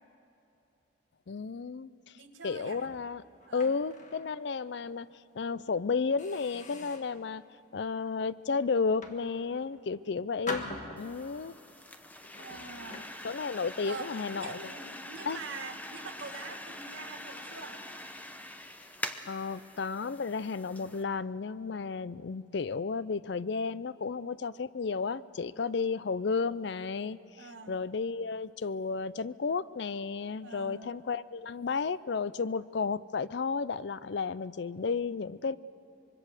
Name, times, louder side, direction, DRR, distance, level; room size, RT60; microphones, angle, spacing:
voice 1, 1.3-3.2 3.5-5.1 5.3-7.4 7.7-11.6 13.2-14.7 15.2-15.4 19.3-35.6, left 5 dB, 60° left, 17 dB, 0.5 m, -33 dB
voice 2, 2.1-2.8 3.5-3.8 12.4-13.1 13.8-14.1 14.4-17.8 27.4-27.8 30.4-30.9, right 4 dB, 75° right, 4 dB, 1.9 m, -44 dB
sound 1, 2.6-4.4 4.8-5.0 5.6-5.7 6.2-7.2 7.8-8.1 8.8-9.8 10.5-11.5 12.2-14.6 14.9-15.2 15.7-15.8 16.2-16.7, left 2 dB, 40° left, 1.6 m, -45 dB
sound 2, 11.0-21.0, left 1 dB, 10° left, 0.9 m, -44 dB
24.5 x 22.5 x 6.6 m, 2.7 s
head